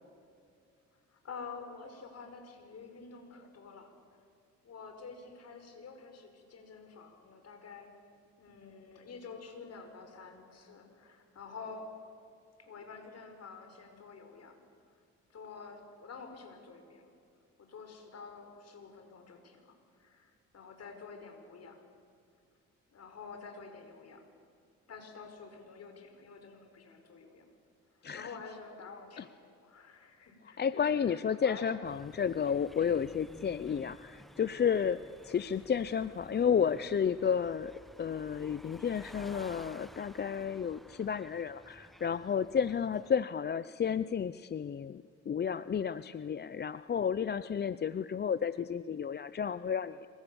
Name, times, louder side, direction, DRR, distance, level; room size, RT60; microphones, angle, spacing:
voice 1, 1.1-3.9 4.6-7.9 8.4-11.9 12.6-14.6 15.3-17.1 17.6-21.8 22.9-24.2 24.9-27.5 27.9-31.7 35.3-35.5, left 5 dB, 55° left, 5 dB, 5.3 m, -49 dB
voice 2, 30.6-37.7 38.0-50.1, left 7 dB, 35° left, 15 dB, 0.6 m, -32 dB
sound 1, 31.8-43.2, equal, ahead, 0.9 m, -54 dB
27.0 x 24.0 x 7.1 m, 2.4 s
cardioid pair, 90°, 30 cm